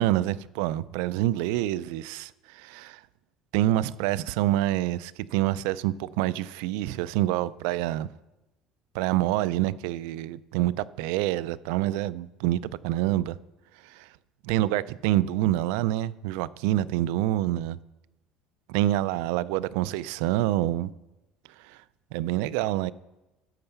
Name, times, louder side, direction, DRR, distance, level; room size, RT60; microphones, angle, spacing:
voice 1, 0.0-3.0 3.5-8.1 8.9-13.4 13.8-14.1 14.4-17.8 18.7-20.9 21.6-21.8 22.1-22.9, right 14 dB, 90° right, 0.3 m, -27 dB
12.5 x 5.5 x 6.8 m
cardioid pair, 140°, 0 cm